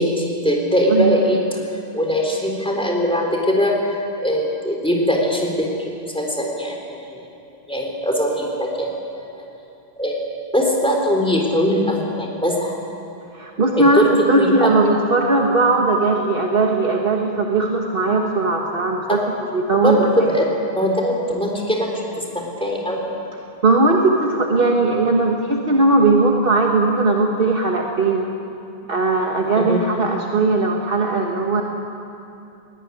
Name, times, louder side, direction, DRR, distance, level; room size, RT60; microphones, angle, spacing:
voice 1, 0.0-1.4 1.9-7.2 7.7-9.4 10.0-12.7 13.7-14.1 14.4-14.7 19.1-19.2 19.8-20.5 20.8-23.0 29.6-29.8, equal, 5° left, 0 dB, 3.9 m, -21 dB
voice 2, 13.3-14.0 14.3-19.2 19.5-20.3 23.6-28.3 28.9-31.6, right 3 dB, 60° right, 0 dB, 1.7 m, -18 dB
21.0 x 18.5 x 9.9 m, 2.8 s
omnidirectional pair, 1.0 m